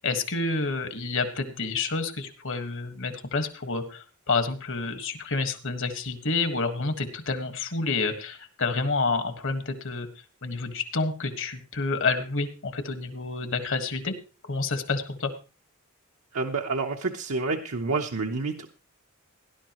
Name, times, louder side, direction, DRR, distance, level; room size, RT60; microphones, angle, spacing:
voice 1, 0.0-10.1 10.4-14.1 14.5-15.3, left 3 dB, 60° left, 8 dB, 1.6 m, -29 dB
voice 2, 16.3-18.7, right 3 dB, 75° right, 1 dB, 1.0 m, -28 dB
18.0 x 11.5 x 3.0 m, 0.33 s
head